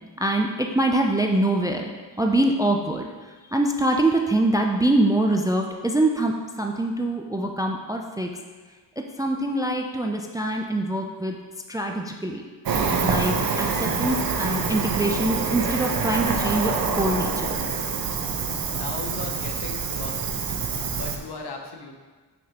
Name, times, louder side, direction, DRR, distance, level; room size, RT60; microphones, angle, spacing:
voice 1, 0.2-1.9 2.2-3.1 3.5-8.3 9.0-11.4 11.7-12.4 13.0-17.6, right 1 dB, 10° right, 2 dB, 0.4 m, -24 dB
Cricket, 12.6-21.2, right 5 dB, 50° right, 0.8 m, -26 dB
voice 2, 18.7-20.7 20.9-22.0, left 4 dB, 60° left, 3 dB, 1.0 m, -37 dB
6.0 x 5.9 x 2.9 m, 1.4 s
cardioid pair, 75°, 44 cm